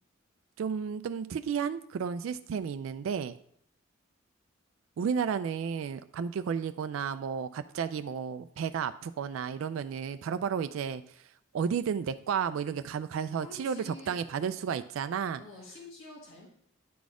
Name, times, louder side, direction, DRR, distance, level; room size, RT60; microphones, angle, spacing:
voice 1, 0.6-3.4 5.0-11.0 11.5-15.4, right 7 dB, 75° right, 11 dB, 0.3 m, -32 dB
voice 2, 13.4-14.6 15.4-16.5, left 2 dB, 80° left, -3 dB, 1.9 m, -48 dB
9.3 x 4.1 x 4.8 m, 0.68 s
head